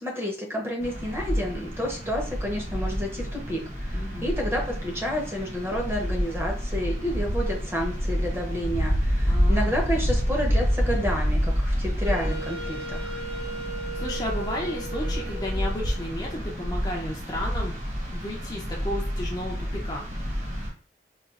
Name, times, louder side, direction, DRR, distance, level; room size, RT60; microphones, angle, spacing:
voice 1, 0.0-13.2, equal, 15° right, -1 dB, 0.7 m, -30 dB
sound 1, 0.8-20.7, equal, 40° right, 1.0 m, -28 dB
voice 2, 3.9-4.3 9.2-9.8 13.9-17.7 18.1-20.0, left 1 dB, 20° left, -2 dB, 0.4 m, -33 dB
Wind instrument woodwind instrument, 12.0-16.9, right 2 dB, 65° right, 1.3 m, -38 dB
4.0 x 2.3 x 2.3 m, 0.42 s
head